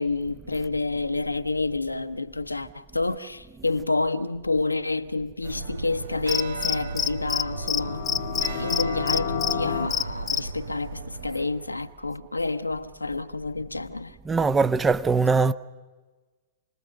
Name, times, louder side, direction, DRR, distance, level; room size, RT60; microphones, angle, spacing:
voice 1, 0.0-8.0 8.5-14.2, left 3 dB, 85° left, 1.0 m, -29 dB
sound 1, 5.4-11.9, right 4 dB, 70° right, 1.2 m, -35 dB
Cricket, 6.3-7.4 7.7-7.8 8.1-9.5 9.9-10.4, left 8 dB, 20° left, 0.6 m, -25 dB
sound 2, 7.3-9.9, left 12 dB, 50° left, 1.0 m, -32 dB
voice 2, 14.3-15.5, right 4 dB, 15° right, 0.8 m, -21 dB
28.5 x 20.5 x 6.6 m
figure-of-eight pair, 100°, 0 cm